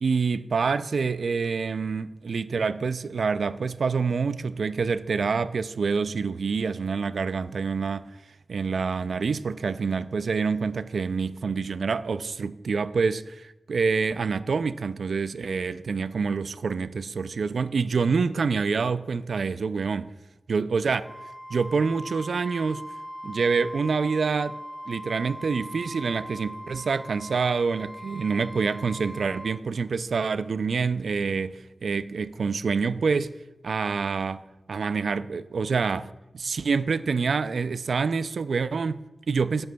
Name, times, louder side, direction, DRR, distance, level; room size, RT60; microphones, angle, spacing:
voice 1, 0.0-8.1 8.5-20.1 20.5-21.0 21.5-22.9 23.2-24.6 24.9-33.3 33.6-39.7, right 5 dB, 80° right, 0.3 m, -27 dB
Wind instrument woodwind instrument, 21.0-29.6, equal, 90° left, 3.0 m, -40 dB
22.0 x 7.6 x 2.3 m
wide cardioid pair, 75°, 0 cm